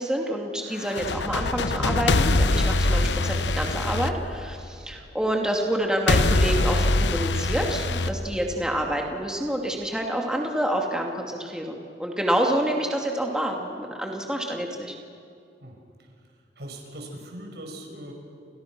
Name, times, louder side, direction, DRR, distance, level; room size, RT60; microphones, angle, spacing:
voice 1, 0.0-14.9, right 1 dB, 5° right, 0 dB, 2.5 m, -28 dB
sound 1, 0.8-4.9 6.1-8.9, left 2 dB, 85° left, 1.0 m, -23 dB
voice 2, 15.6-18.1, right 1 dB, 70° right, 2 dB, 5.9 m, -41 dB
30.0 x 29.0 x 6.2 m, 2.5 s
head